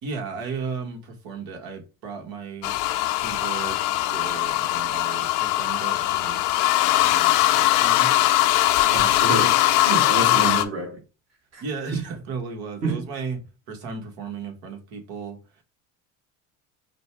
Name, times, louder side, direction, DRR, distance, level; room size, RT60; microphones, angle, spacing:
voice 1, 0.0-2.8 3.1-6.4 6.9-8.1 8.8-9.5 10.2-10.6 11.6-13.4 13.7-15.6, right 5 dB, 60° right, 1.6 m, -35 dB
sound 1, 2.6-10.6, left 15 dB, 65° left, 0.7 m, -21 dB
voice 2, 8.9-11.0 11.5-11.6 11.9-12.0 12.8-13.0, right 3 dB, 40° right, 1.6 m, -28 dB
5.1 x 2.3 x 4.6 m
supercardioid pair, 90°, 40 cm